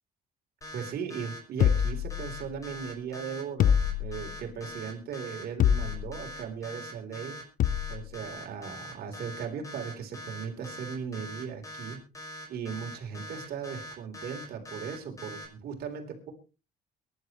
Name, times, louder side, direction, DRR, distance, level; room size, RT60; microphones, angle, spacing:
sound 1, 0.6-15.4, equal, 20° left, 5.6 m, -42 dB
voice 1, 0.7-7.4 7.9-12.0 12.5-16.3, right 7 dB, 65° right, 4 dB, 3.8 m, -38 dB
sound 2, 1.6-2.7 3.6-4.5 5.6-6.3 7.6-8.1, left 9 dB, 55° left, 0.7 m, -26 dB
23.0 x 11.5 x 3.1 m, 0.31 s
cardioid pair, 110°, 17 cm